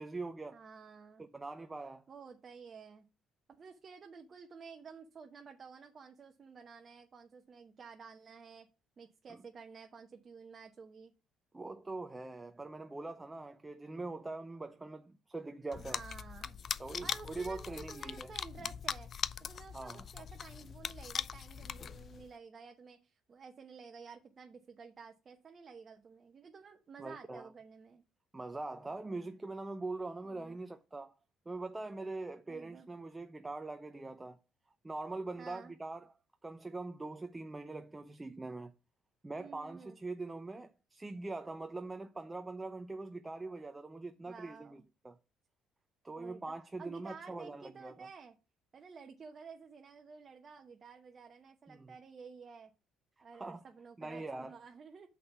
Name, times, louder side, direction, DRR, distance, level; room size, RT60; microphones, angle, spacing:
voice 1, 0.0-0.6 1.2-2.0 9.3-9.4 11.5-16.0 16.8-18.3 19.7-20.1 27.0-27.5 28.3-31.1 31.5-34.4 34.8-36.1 36.4-38.7 39.2-45.2 46.0-48.1 51.7-51.9 53.3-53.6 54.0-54.6, right 3 dB, 20° right, 0.7 m, -43 dB
voice 2, 0.5-1.3 2.1-3.0 3.5-8.7 9.0-11.1 15.8-16.6 17.0-19.1 19.4-28.0 30.2-30.6 32.5-32.9 35.4-35.7 39.4-40.0 44.3-44.9 46.2-46.4 46.8-48.4 48.7-52.7 53.2-55.1, right 5 dB, 45° right, 1.0 m, -52 dB
sound 1, 15.7-22.3, left 7 dB, 50° left, 0.4 m, -41 dB
6.4 x 5.3 x 5.8 m
hypercardioid pair, 60°, 0 cm